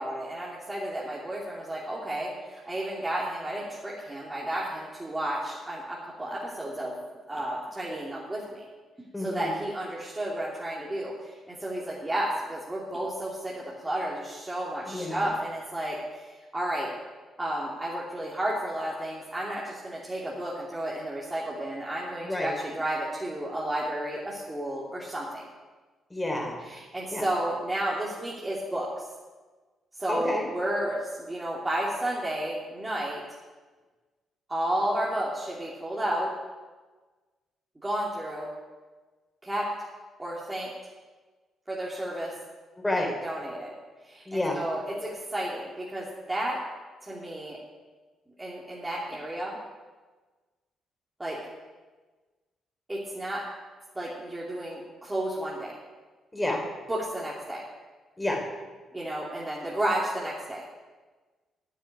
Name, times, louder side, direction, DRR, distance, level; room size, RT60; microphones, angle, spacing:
voice 1, 0.0-7.0 7.3-8.6 9.2-16.2 16.5-16.9 17.4-25.4 26.6-28.9 30.0-33.2 34.5-36.3 37.8-38.5 39.4-39.7 40.2-40.7 41.7-42.3 42.9-43.7 44.0-46.6 47.0-47.6 48.4-49.6 51.2-51.4 52.9-53.4 53.9-55.7 56.9-57.6 58.9-60.6, right 1 dB, 15° right, -6 dB, 2.9 m, -32 dB
voice 2, 9.1-9.5 14.9-15.3 22.2-22.5 26.1-26.5 27.1-27.2 30.1-30.4 42.8-43.1 44.3-44.6 56.3-56.6 58.2-58.4, left 1 dB, 10° left, 0 dB, 4.2 m, -29 dB
10.0 x 9.4 x 9.7 m, 1.3 s
cardioid pair, 90°, 0 cm